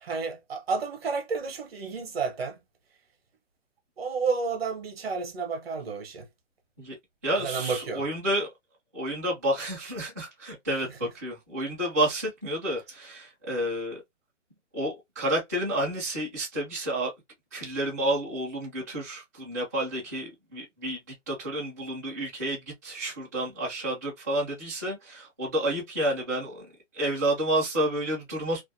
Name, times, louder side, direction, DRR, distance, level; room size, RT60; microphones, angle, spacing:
voice 1, 0.0-2.5 4.0-6.2 7.4-8.0, right 5 dB, 55° right, 0.8 m, -31 dB
voice 2, 7.2-8.5 8.9-14.0 14.7-17.1 17.5-21.0 21.3-26.7 26.9-28.6, right 1 dB, 15° right, 0.5 m, -30 dB
2.5 x 2.0 x 2.6 m
hypercardioid pair, 165°, 37 cm